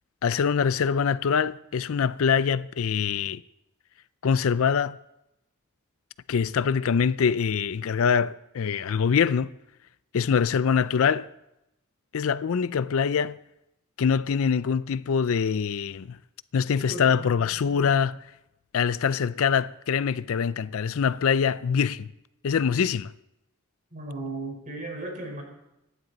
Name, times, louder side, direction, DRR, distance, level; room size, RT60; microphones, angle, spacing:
voice 1, 0.2-3.4 4.2-5.0 6.3-9.5 10.1-11.3 12.1-13.4 14.0-16.2 16.5-18.2 18.7-22.1 22.4-23.1, left 6 dB, 60° left, 0.4 m, -24 dB
voice 2, 16.8-17.9 23.9-25.4, right 2 dB, 35° right, 4.4 m, -37 dB
25.0 x 11.0 x 4.0 m
head